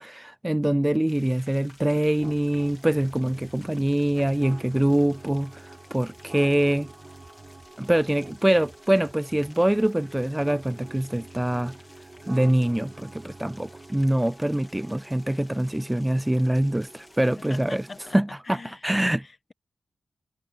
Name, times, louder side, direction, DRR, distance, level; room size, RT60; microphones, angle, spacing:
voice 1, 0.0-6.9 7.8-11.8 12.3-17.8 18.1-19.2, right 1 dB, 10° right, 0.4 m, -24 dB
sound 1, 1.1-18.2, left 1 dB, 20° left, 3.2 m, -54 dB
sound 2, 2.2-18.2, right 3 dB, 35° right, 5.7 m, -47 dB
voice 2, 17.4-18.9 19.2-19.5, left 3 dB, 40° left, 1.1 m, -43 dB
cardioid pair, 80°, 0 cm